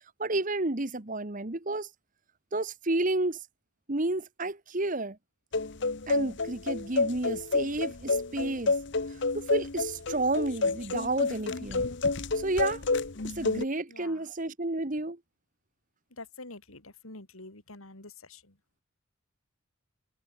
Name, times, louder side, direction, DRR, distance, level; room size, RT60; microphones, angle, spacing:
voice 1, 0.2-1.9 2.5-3.4 3.9-5.2 6.1-8.7 9.3-11.9 12.3-12.8 13.2-15.2, right 2 dB, 40° right, 1.3 m, -31 dB
sound 1, 5.5-13.7, left 3 dB, 55° left, 1.0 m, -29 dB
voice 2, 13.9-14.3 16.1-18.6, left 2 dB, 85° left, 4.0 m, -47 dB
head